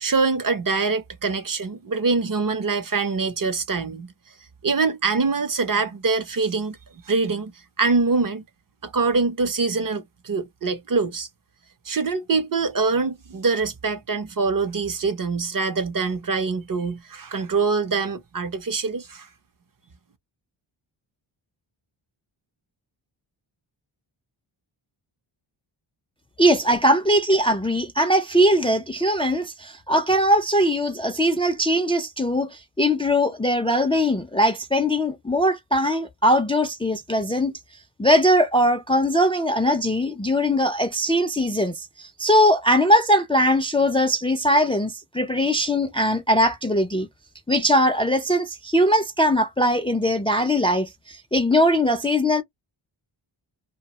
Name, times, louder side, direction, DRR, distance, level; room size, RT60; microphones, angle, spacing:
voice 1, 0.0-4.1 4.6-6.8 7.1-7.5 7.8-8.4 8.8-11.3 11.9-19.3, right 4 dB, 45° right, 0.7 m, -24 dB
voice 2, 26.4-37.5 38.0-47.1 47.5-52.4, equal, 10° left, 0.4 m, -20 dB
2.3 x 2.2 x 2.9 m
wide cardioid pair, 80°, 49 cm